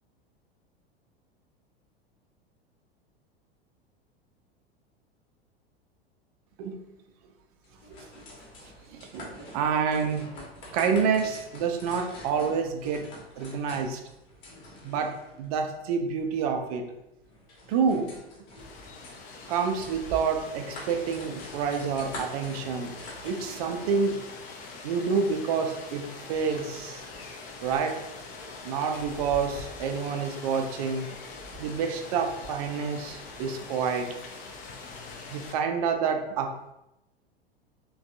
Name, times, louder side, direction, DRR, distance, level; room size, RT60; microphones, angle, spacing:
sound 1, 7.6-24.1, left 1 dB, 40° left, 1.0 m, -47 dB
voice 1, 8.9-10.3 10.7-13.1 13.4-14.0 14.8-16.9 17.7-18.2 19.5-22.9 23.2-24.2 24.8-27.0 27.6-28.0 28.6-31.2 31.6-34.1 35.3-36.7, right 6 dB, 40° right, 5 dB, 0.4 m, -28 dB
Rain, 18.6-35.5, left 3 dB, 25° left, 0.4 m, -43 dB
3.1 x 2.3 x 2.5 m, 0.90 s
figure-of-eight pair, 85°, 31 cm